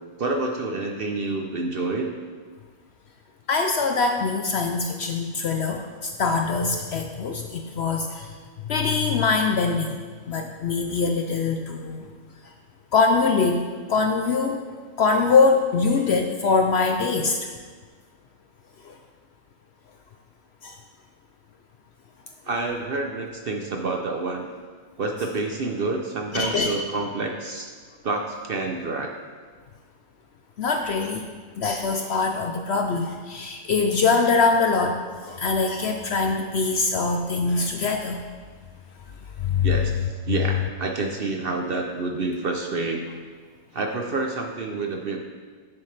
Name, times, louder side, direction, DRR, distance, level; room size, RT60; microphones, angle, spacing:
voice 1, 0.2-2.1 22.4-24.5 25.0-27.7 28.0-29.1 39.6-43.1 43.7-45.2, right 3 dB, 55° right, 3 dB, 0.7 m, -28 dB
voice 2, 3.5-8.3 8.7-10.0 10.3-12.1 12.9-13.6 13.9-14.6 15.0-17.4 18.8-19.0 20.6-20.8 26.3-26.7 30.6-31.3 31.6-38.2 39.4-39.7, left 4 dB, 65° left, 4 dB, 0.7 m, -23 dB
10.5 x 7.1 x 3.3 m, 1.5 s
omnidirectional pair, 1.5 m